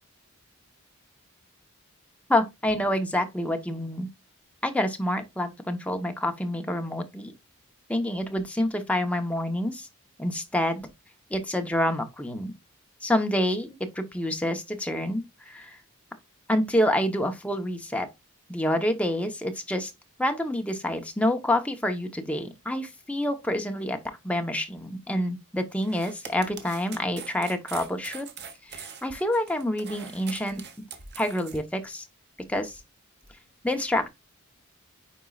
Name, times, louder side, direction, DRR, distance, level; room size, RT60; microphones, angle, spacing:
voice 1, 2.3-4.1 4.6-7.3 7.9-9.9 10.2-10.9 11.3-12.5 13.0-15.8 16.5-18.1 18.5-19.9 20.2-28.3 28.7-30.6 31.2-32.1 32.5-32.8 33.6-34.1, left 1 dB, 5° left, 1.0 m, -27 dB
sound 1, 25.8-31.6, right 6 dB, 50° right, 1.2 m, -43 dB
9.2 x 4.5 x 2.4 m
head